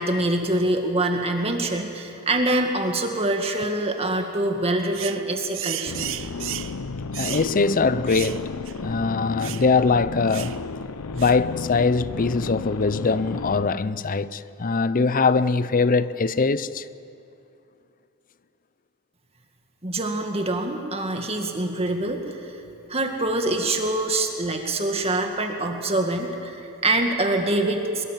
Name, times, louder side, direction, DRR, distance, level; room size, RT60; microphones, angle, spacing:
voice 1, 0.0-6.1 19.8-22.6 22.9-28.0, right 2 dB, 30° right, 2.0 m, -25 dB
sound 1, 4.9-5.2 5.5-6.8 7.1-7.5 8.1-8.4 8.7-8.8 9.4-9.7 10.3-10.6 11.2-11.4, right 14 dB, 60° right, 0.7 m, -33 dB
sound 2, 5.9-13.7, left 4 dB, 85° left, 0.7 m, -33 dB
voice 2, 7.1-8.5 8.8-10.7 11.1-16.9, left 4 dB, 40° left, 0.6 m, -22 dB
23.0 x 22.5 x 7.4 m
head